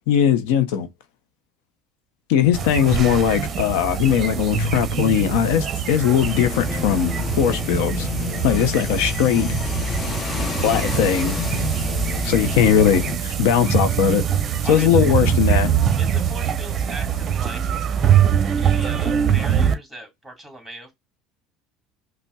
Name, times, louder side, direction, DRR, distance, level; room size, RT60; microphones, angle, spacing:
voice 1, 0.1-0.9 2.3-8.1 8.4-9.5 10.6-11.4 12.2-14.2 14.7-15.7, left 9 dB, 85° left, 0.6 m, -19 dB
sound 1, 2.5-19.7, right 8 dB, 35° right, 0.6 m, -23 dB
sound 2, 6.2-13.2, left 5 dB, 30° left, 0.7 m, -28 dB
voice 2, 14.6-15.1 16.0-17.7 18.6-20.9, right 1 dB, ahead, 2.2 m, -39 dB
5.3 x 2.1 x 2.2 m
supercardioid pair, 115°, 0 cm